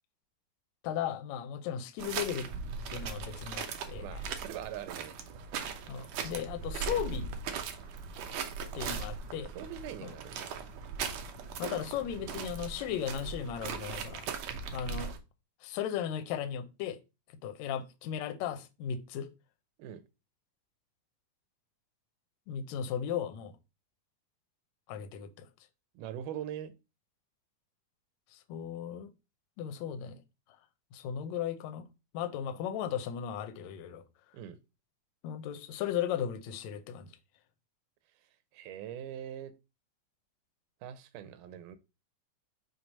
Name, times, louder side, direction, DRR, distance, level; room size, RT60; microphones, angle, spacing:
voice 1, 0.8-2.5 2.9-4.2 5.9-7.3 8.7-9.5 10.0-10.1 11.6-14.3 14.7-15.1 15.6-17.0 17.4-19.3 22.5-23.5 24.9-25.5 28.5-29.1 29.6-30.2 30.9-31.8 32.1-34.0 35.2-37.1, left 9 dB, 75° left, 1.8 m, -36 dB
sound 1, 2.0-15.2, right 6 dB, 70° right, 1.6 m, -39 dB
voice 2, 4.0-5.2 8.7-8.8 9.6-10.5 19.8-20.0 26.0-26.7 34.3-34.6 38.5-39.5 40.8-41.8, right 10 dB, 85° right, 2.2 m, -42 dB
6.0 x 3.1 x 5.3 m
omnidirectional pair, 3.7 m